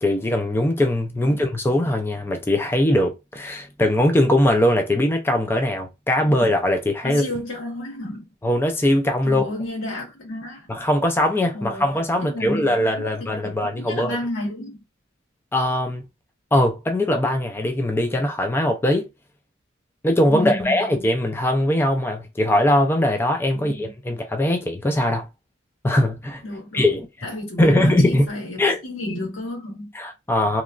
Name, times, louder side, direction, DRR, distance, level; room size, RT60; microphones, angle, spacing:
voice 1, 0.0-7.2 8.4-9.4 10.7-14.2 15.5-16.0 16.5-19.1 20.0-25.3 25.8-26.4 26.7-27.1 27.6-28.3 28.6-28.8 29.9-30.6, left 1 dB, 10° left, 0.4 m, -21 dB
voice 2, 7.0-8.3 9.2-10.7 11.5-11.9 12.2-14.8 20.3-20.9 23.5-23.9 26.4-26.9 27.2-29.9, left 1 dB, 85° left, 1.3 m, -31 dB
2.9 x 2.2 x 2.4 m
head